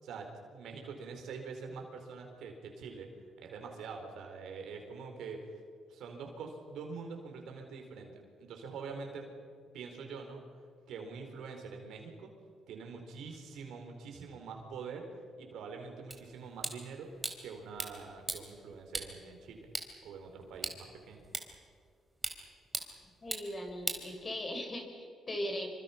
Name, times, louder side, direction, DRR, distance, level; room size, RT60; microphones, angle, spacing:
voice 1, 0.0-3.1 3.4-5.5 5.9-9.3 9.7-10.6 10.9-12.3 12.7-15.1 15.4-17.1 17.4-19.7 20.0-21.2, right 5 dB, 80° right, 3 dB, 4.5 m, -45 dB
sound 1, 16.1-24.7, right 2 dB, 15° right, 3.5 m, -42 dB
voice 2, 23.2-25.7, left 1 dB, 30° left, 3 dB, 5.6 m, -39 dB
26.5 x 25.0 x 6.0 m, 2.1 s
cardioid pair, 90°, 0 cm